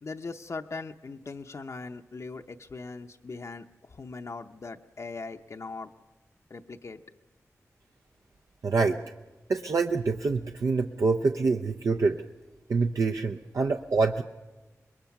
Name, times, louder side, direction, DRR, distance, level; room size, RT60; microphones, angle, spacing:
voice 1, 0.0-5.9 6.5-7.0, left 3 dB, 60° left, 5 dB, 0.7 m, -40 dB
voice 2, 8.6-9.0 9.5-12.2 12.7-14.2, right 4 dB, 70° right, 3 dB, 0.6 m, -26 dB
24.5 x 21.0 x 5.9 m, 1.2 s
cardioid pair, 60°, 6 cm